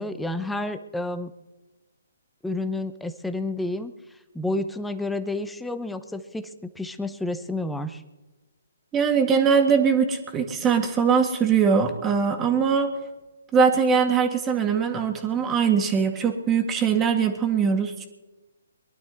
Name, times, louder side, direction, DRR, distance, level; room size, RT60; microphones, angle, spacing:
voice 1, 0.0-1.3 2.4-3.9 4.3-8.0, left 2 dB, 5° left, 9 dB, 0.9 m, -30 dB
voice 2, 8.9-12.9 13.5-18.1, right 6 dB, 15° right, 5 dB, 1.8 m, -21 dB
22.5 x 11.5 x 4.1 m, 1.1 s
figure-of-eight pair, 140°, 0 cm